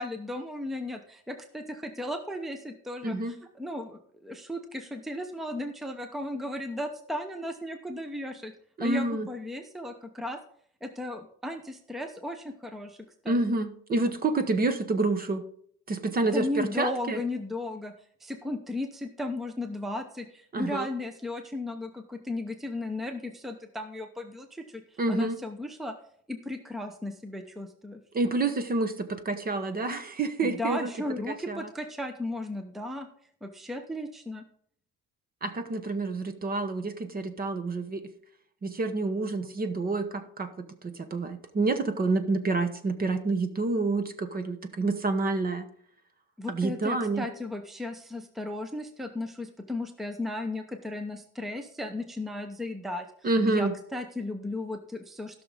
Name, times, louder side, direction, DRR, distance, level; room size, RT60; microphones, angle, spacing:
voice 1, 0.0-8.5 8.8-10.4 10.8-13.4 16.3-17.9 18.2-26.0 26.3-28.0 30.4-33.1 33.4-34.4 46.4-55.4, left 1 dB, ahead, 6 dB, 0.7 m, -35 dB
voice 2, 3.0-3.3 8.8-9.3 13.3-15.4 15.9-17.2 20.5-20.9 25.0-25.4 28.1-30.9 31.3-31.7 35.4-38.1 38.6-45.7 46.5-47.3 53.2-53.7, right 3 dB, 30° right, 9 dB, 1.0 m, -28 dB
16.0 x 6.2 x 3.9 m, 0.62 s
cardioid pair, 140°, 30 cm